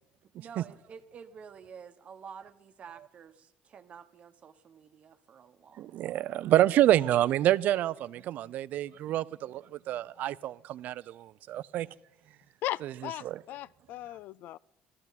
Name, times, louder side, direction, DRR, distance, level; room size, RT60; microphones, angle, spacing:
voice 1, 0.3-6.1, right 6 dB, 45° right, 1.0 m, -50 dB
voice 2, 5.8-11.9 12.8-13.3, right 13 dB, 60° right, 0.5 m, -28 dB
voice 3, 12.6-13.2 13.5-14.6, left 14 dB, 70° left, 0.4 m, -37 dB
18.0 x 13.5 x 4.1 m
cardioid pair, 115°, 3 cm